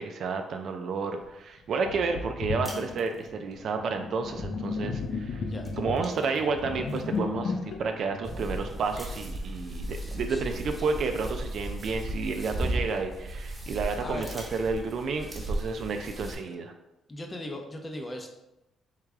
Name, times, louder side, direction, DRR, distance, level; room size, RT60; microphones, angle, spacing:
voice 1, 0.0-5.4 5.8-16.7, right 4 dB, 65° right, 5 dB, 0.4 m, -31 dB
Sink (filling or washing), 1.2-1.3 1.9-9.2, left 4 dB, 60° left, 0.5 m, -35 dB
sound 1, 2.6-3.6 5.0-5.3 5.6-7.2 7.8-7.9 8.9-9.5 11.0-11.1 11.5-13.0 14.1-15.2, equal, 10° left, 1.1 m, -49 dB
sound 2, 8.2-16.3, right 1 dB, 25° right, 1.2 m, -35 dB
voice 2, 17.1-18.3, left 1 dB, 25° left, 3 dB, 0.7 m, -38 dB
3.7 x 3.2 x 3.5 m, 0.92 s
cardioid pair, 90°, 0 cm